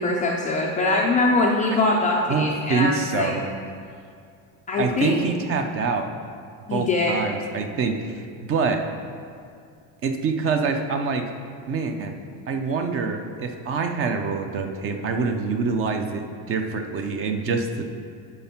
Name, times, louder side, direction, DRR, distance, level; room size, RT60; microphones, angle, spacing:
voice 1, 0.0-3.3 4.7-5.2 6.7-7.2, left 2 dB, 20° left, -2 dB, 0.3 m, -22 dB
voice 2, 2.3-3.4 4.8-6.1 6.7-8.8 10.0-11.3 11.7-12.2 12.5-17.8, right 4 dB, 30° right, 6 dB, 0.5 m, -25 dB
11.5 x 4.3 x 5.8 m, 2.3 s
cardioid pair, 170°, 43 cm